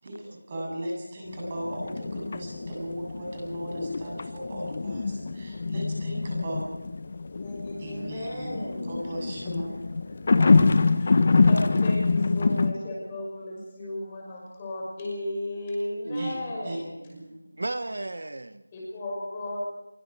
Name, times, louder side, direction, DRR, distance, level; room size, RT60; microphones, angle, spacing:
voice 1, 0.0-6.6 7.8-9.7 16.2-16.3 16.6-16.8 17.1-17.2, right 1 dB, 20° right, -2 dB, 7.9 m, -37 dB
sound 1, 1.3-12.7, left 4 dB, 30° left, 1.1 m, -25 dB
voice 2, 7.4-9.1 11.0-17.1 18.7-19.6, left 1 dB, 15° left, -3 dB, 6.0 m, -35 dB
voice 3, 16.0-16.7 17.1-18.6, right 2 dB, 55° right, 11 dB, 1.1 m, -35 dB
25.0 x 23.5 x 4.7 m, 0.99 s
figure-of-eight pair, 175°, 0 cm